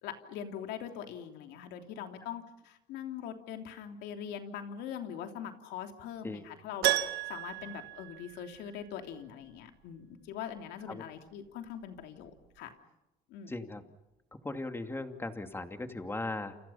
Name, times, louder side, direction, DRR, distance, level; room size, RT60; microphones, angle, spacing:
voice 1, 0.0-7.0 7.3-12.3 12.6-12.7 13.3-13.5, left 9 dB, 90° left, 5 dB, 3.2 m, -42 dB
Keyboard (musical), 6.8-8.9 9.1-9.2 11.9-12.0 12.3-12.4, right 15 dB, 80° right, 1.4 m, -33 dB
voice 2, 13.5-13.8 14.4-16.6, left 2 dB, 15° left, 6 dB, 2.5 m, -38 dB
29.0 x 29.0 x 5.7 m, 0.92 s
cardioid pair, 110°, 17 cm